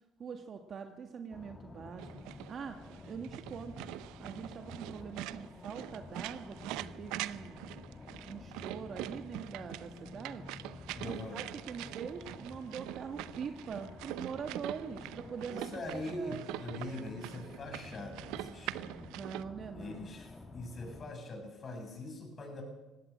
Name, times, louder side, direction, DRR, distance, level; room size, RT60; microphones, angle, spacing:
voice 1, 0.2-2.1 2.5-2.8 3.0-3.9 4.2-7.6 8.3-10.4 11.0-16.6 19.1-20.1, right 6 dB, 50° right, 6 dB, 1.7 m, -43 dB
sound 1, 1.3-21.0, left 3 dB, 25° left, 2.7 m, -51 dB
sound 2, 2.0-19.4, right 16 dB, 85° right, 0.6 m, -44 dB
voice 2, 11.0-11.4 15.4-19.0 19.7-22.6, left 2 dB, 45° left, 3 dB, 7.5 m, -43 dB
17.0 x 17.0 x 8.9 m, 1.1 s
supercardioid pair, 80°, 0 cm